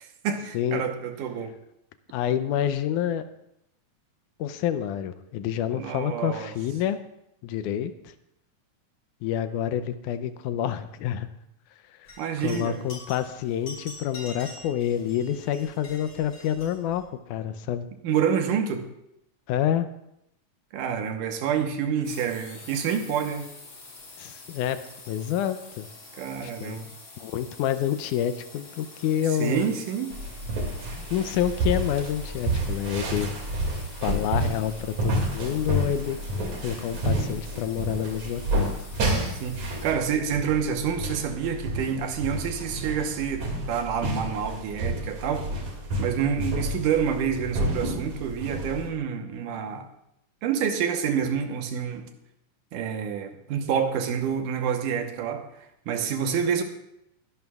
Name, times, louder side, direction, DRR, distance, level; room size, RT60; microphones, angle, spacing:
voice 1, 0.0-1.5 5.7-6.5 12.2-12.8 18.0-18.8 20.7-23.5 26.1-26.9 29.4-30.1 39.3-45.5 46.0-49.9 50.4-52.1 52.7-55.4 55.9-56.6, right 7 dB, 85° right, 6 dB, 2.6 m, -28 dB
voice 2, 2.1-3.3 4.4-7.0 7.4-8.1 9.2-11.3 12.0-12.1 12.4-17.0 17.3-17.9 19.5-19.9 24.2-25.9 26.4-26.8 27.2-29.7 31.1-33.3 34.0-36.2 36.6-38.8, left 10 dB, 80° left, 11 dB, 2.1 m, -28 dB
sound 1, 12.1-17.0, left 2 dB, 40° left, 5.9 m, -45 dB
sound 2, 22.0-39.9, left 3 dB, 60° left, 4.1 m, -47 dB
sound 3, 30.1-48.9, right 1 dB, 70° right, 3.5 m, -30 dB
21.5 x 11.0 x 2.3 m, 0.80 s
omnidirectional pair, 3.6 m